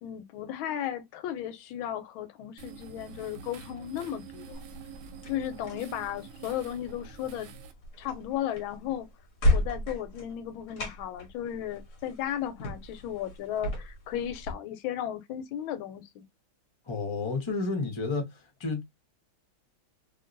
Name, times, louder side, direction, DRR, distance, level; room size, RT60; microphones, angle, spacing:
voice 1, 0.0-4.6 5.3-7.5 8.0-9.1 9.5-16.3, left 11 dB, 85° left, 1.4 m, -35 dB
sound 1, 2.6-7.7, right 6 dB, 85° right, 1.4 m, -47 dB
sound 2, 4.5-14.5, left 1 dB, 50° left, 1.1 m, -34 dB
voice 2, 16.9-18.8, left 3 dB, 25° left, 0.6 m, -31 dB
2.9 x 2.9 x 2.5 m
omnidirectional pair, 2.1 m